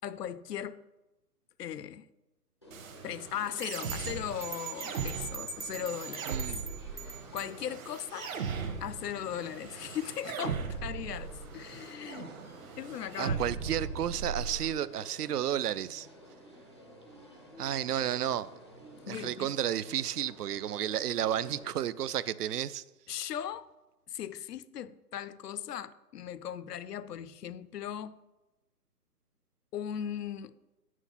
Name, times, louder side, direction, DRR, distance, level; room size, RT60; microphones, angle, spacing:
voice 1, 0.0-0.8 1.6-2.1 3.0-6.4 6.9-8.3 8.8-12.3 12.8-13.7 19.0-19.5 23.1-23.7 24.1-28.2 29.7-30.6, left 9 dB, 75° left, 0.6 m, -38 dB
sound 1, 2.6-21.7, equal, 20° left, 0.4 m, -53 dB
sound 2, 2.7-14.7, right 5 dB, 55° right, 1.4 m, -39 dB
sound 3, 3.8-7.5, right 10 dB, 30° right, 0.7 m, -42 dB
voice 2, 6.3-6.6 13.2-16.1 17.6-18.5 19.1-22.8, right 10 dB, 75° right, 0.5 m, -32 dB
6.3 x 6.1 x 5.7 m
hypercardioid pair, 150°, 48 cm